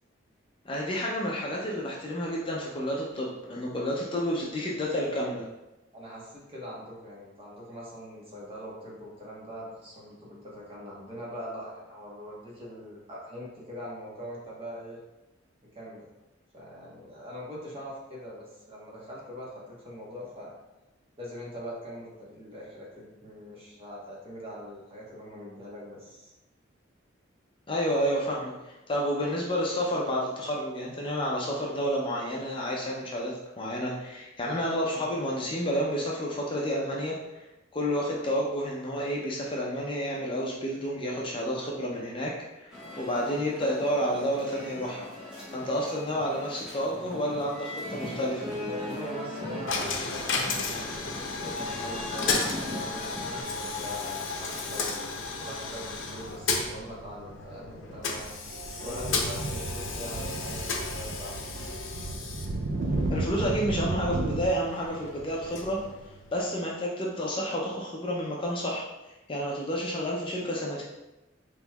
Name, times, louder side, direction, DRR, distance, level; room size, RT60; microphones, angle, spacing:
voice 1, 0.6-5.4 27.7-37.4 37.7-42.7 43.0-45.1 45.5-48.4 63.1-65.8 66.3-68.9 69.3-70.8, equal, 25° left, -3 dB, 0.5 m, -30 dB
voice 2, 5.9-15.0 15.7-16.1 16.5-20.5 21.2-26.3 48.5-58.3 58.8-61.3, equal, 30° right, -5 dB, 1.1 m, -42 dB
sound 1, 42.7-53.4, left 1 dB, 5° right, 1.3 m, -40 dB
Coin (dropping), 49.7-66.6, left 4 dB, 85° left, 0.6 m, -34 dB
sound 2, 58.5-64.5, right 2 dB, 75° right, 0.5 m, -33 dB
5.2 x 3.0 x 2.3 m, 0.99 s
head